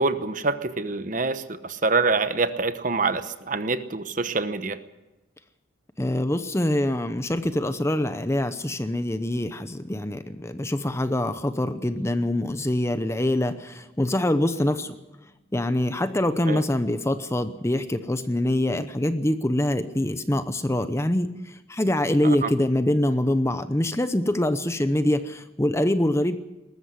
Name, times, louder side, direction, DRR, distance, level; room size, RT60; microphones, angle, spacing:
voice 1, 0.0-4.8 16.5-16.6 22.2-22.5, right 3 dB, 40° right, 11 dB, 1.0 m, -25 dB
voice 2, 6.0-14.9 15.5-21.3 21.7-26.4, left 1 dB, 15° left, 11 dB, 0.8 m, -24 dB
20.5 x 13.5 x 9.6 m, 1.0 s
head